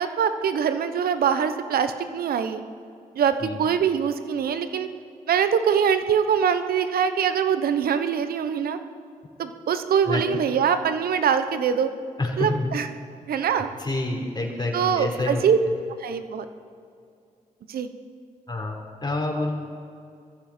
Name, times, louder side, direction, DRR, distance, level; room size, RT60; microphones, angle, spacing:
voice 1, 0.0-2.6 3.1-4.9 5.3-8.8 9.4-11.9 12.4-12.9 13.3-13.7 14.7-15.6 16.0-16.4 17.7-17.9, right 7 dB, 80° right, 10 dB, 1.0 m, -23 dB
voice 2, 12.2-12.8 13.8-15.4 18.5-19.5, left 2 dB, 30° left, 0 dB, 4.1 m, -28 dB
21.0 x 14.5 x 4.4 m, 2.3 s
cardioid pair, 55°, 15 cm